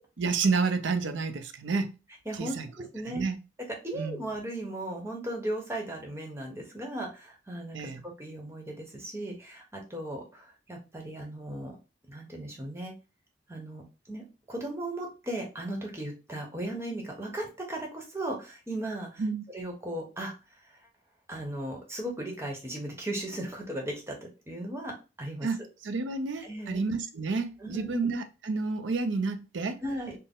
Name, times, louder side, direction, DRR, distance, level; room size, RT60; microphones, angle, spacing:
voice 1, 0.2-1.9 2.3-2.7 3.1-3.4 3.9-4.2 7.7-8.0 19.2-19.4 25.4-29.8, right 4 dB, 85° right, 0.6 m, -30 dB
voice 2, 2.2-3.2 3.7-11.7 12.1-12.9 13.5-14.2 14.5-19.2 19.5-20.3 20.6-20.8 21.3-25.5 26.4-26.8 27.6-28.0 29.8-30.1, right 1 dB, 15° right, 1.0 m, -37 dB
4.2 x 2.1 x 3.6 m
head